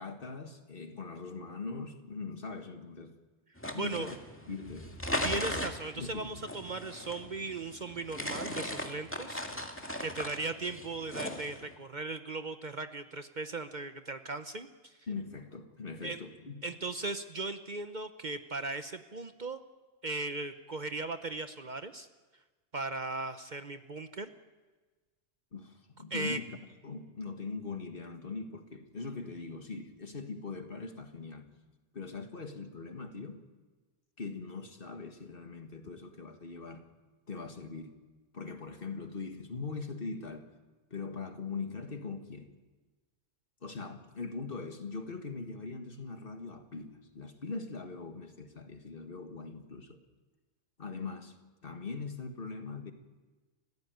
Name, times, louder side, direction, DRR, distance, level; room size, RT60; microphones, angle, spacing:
voice 1, 0.0-3.1 3.7-4.2 4.5-4.9 5.5-5.7 5.9-6.4 15.1-16.6 25.5-26.6 26.8-31.5 31.9-33.5 34.2-36.9 37.3-38.0 38.3-40.5 40.9-42.5 43.6-50.0 50.8-51.3 51.6-52.9, left 4 dB, 50° left, 6 dB, 1.9 m, -41 dB
sound 1, 3.6-11.7, left 1 dB, 10° left, 2.0 m, -38 dB
voice 2, 3.7-4.1 5.2-9.4 9.8-15.0 16.0-16.2 16.6-19.6 20.0-22.1 22.7-24.3 26.1-26.4, right 3 dB, 45° right, 9 dB, 0.9 m, -37 dB
29.5 x 15.5 x 9.3 m, 1.3 s
omnidirectional pair, 1.2 m